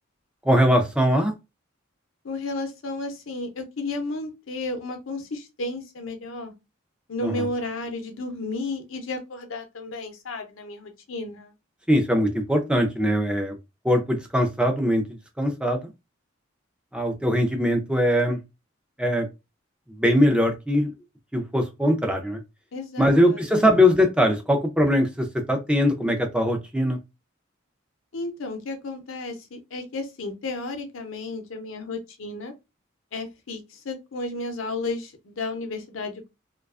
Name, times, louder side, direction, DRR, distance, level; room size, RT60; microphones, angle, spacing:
voice 1, 0.4-1.3 7.2-7.5 11.9-13.5 13.8-15.9 16.9-18.4 19.0-19.3 20.0-20.9 21.3-22.4 23.0-27.0, equal, 5° right, 0.4 m, -21 dB
voice 2, 2.2-6.5 7.1-11.5 22.7-23.7 28.1-32.5 33.1-36.3, left 2 dB, 85° left, 0.6 m, -33 dB
2.4 x 2.2 x 2.3 m
head